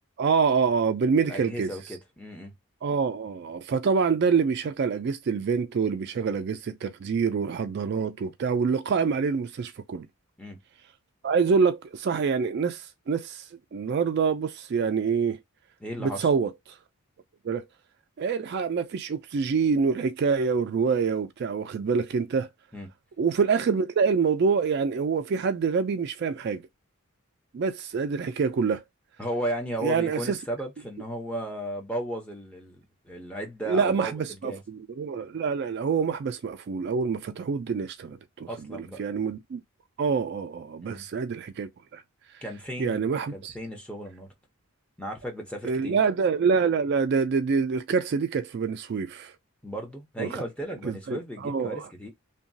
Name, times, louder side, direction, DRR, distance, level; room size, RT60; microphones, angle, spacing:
voice 1, 0.2-1.7 2.8-10.1 11.2-13.4 13.7-15.4 16.0-16.5 17.4-17.7 18.2-22.5 23.2-26.6 27.5-28.8 29.8-30.4 33.7-39.6 40.0-42.0 42.8-43.5 45.6-49.3 50.2-50.3 50.8-51.8, right 5 dB, 50° right, 0.3 m, -26 dB
voice 2, 1.2-2.5 10.4-10.6 15.8-16.3 22.7-22.9 29.2-34.6 38.5-39.0 40.8-41.1 42.4-43.0 43.3-44.3 45.0-46.0 49.6-52.1, right 1 dB, 5° left, 0.7 m, -35 dB
2.9 x 2.2 x 2.6 m
head